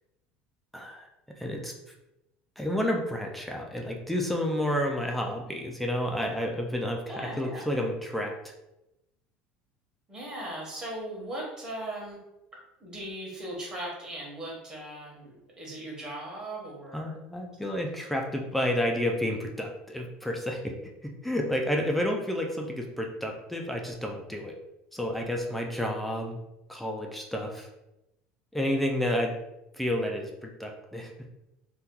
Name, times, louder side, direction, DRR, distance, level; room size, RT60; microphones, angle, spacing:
voice 1, 0.7-1.1 1.4-1.7 2.6-8.4 16.9-20.8 21.2-24.6 24.9-26.4 26.7-27.7 28.5-29.4 29.7-31.1, left 1 dB, 5° left, 1 dB, 0.3 m, -30 dB
voice 2, 7.1-7.7 10.1-12.2 12.8-17.1, right 1 dB, 20° right, -4 dB, 1.1 m, -38 dB
2.8 x 2.2 x 3.6 m, 0.91 s
cardioid pair, 140°, 3 cm